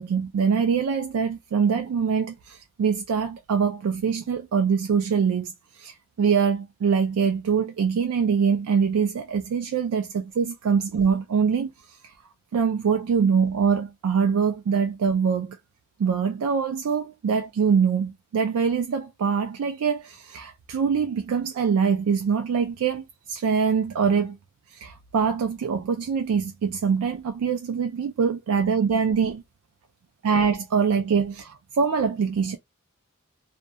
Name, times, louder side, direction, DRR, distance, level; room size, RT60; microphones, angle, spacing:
voice 1, 0.0-12.1 12.5-15.6 16.0-24.4 24.7-29.4 30.2-32.6, right 6 dB, 85° right, 0.3 m, -24 dB
2.2 x 2.1 x 2.7 m
head